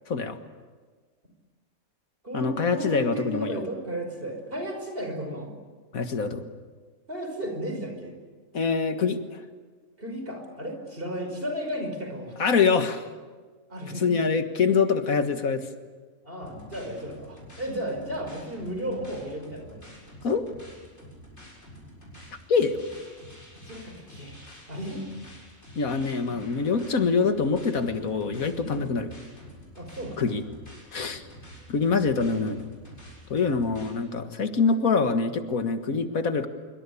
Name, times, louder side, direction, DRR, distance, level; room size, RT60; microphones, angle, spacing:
voice 1, 0.1-0.4 2.3-3.6 5.9-6.4 8.5-9.4 12.4-13.1 14.0-15.7 20.2-20.5 22.5-22.8 25.8-29.1 30.2-30.4 30.9-31.2 31.7-32.7 33.3-36.5, left 5 dB, 85° left, 8 dB, 2.0 m, -25 dB
voice 2, 2.2-5.5 7.1-8.2 10.0-12.5 13.7-14.1 16.2-19.9 23.7-24.4 24.7-25.0 28.6-28.9 29.8-30.3, equal, 40° right, 4 dB, 5.5 m, -34 dB
sound 1, 16.4-33.9, equal, 55° left, 7.7 m, -48 dB
25.0 x 24.0 x 8.5 m, 1.4 s
omnidirectional pair, 1.4 m